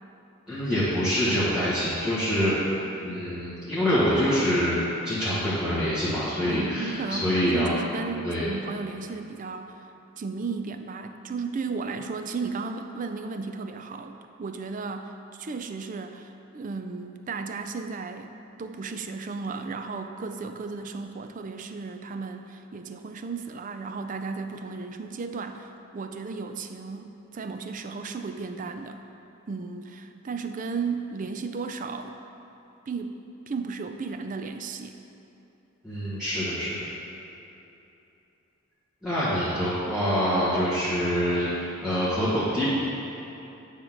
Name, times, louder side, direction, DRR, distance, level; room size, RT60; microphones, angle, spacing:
voice 1, 0.5-2.5 3.0-4.8 5.0-7.7 8.2-8.4 35.8-36.7 39.0-42.7, equal, 5° right, -13 dB, 1.4 m, -25 dB
voice 2, 6.5-9.8 10.2-29.0 29.5-32.1 32.9-35.0 39.2-39.4, right 4 dB, 40° right, 7 dB, 0.4 m, -34 dB
9.2 x 3.7 x 6.0 m, 2.9 s
head